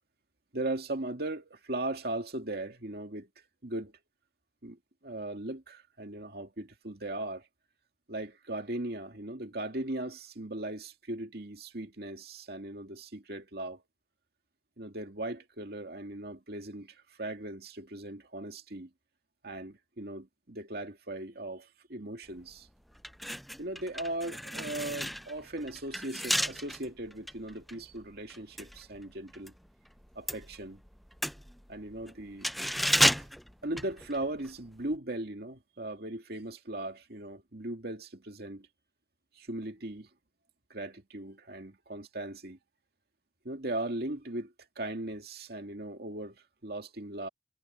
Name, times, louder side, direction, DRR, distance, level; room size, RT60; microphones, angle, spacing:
voice 1, 0.5-3.3 3.6-4.0 4.6-7.5 8.1-13.8 14.8-18.9 19.4-22.7 23.6-29.5 30.2-30.8 31.7-32.5 33.6-38.7 39.4-40.1 40.7-42.6 43.4-47.3, right 1 dB, 60° right, 2.3 m, -38 dB
sound 1, 22.4-22.5 23.0-29.6 29.9-34.5 34.8-35.0, equal, ahead, 0.3 m, -32 dB
head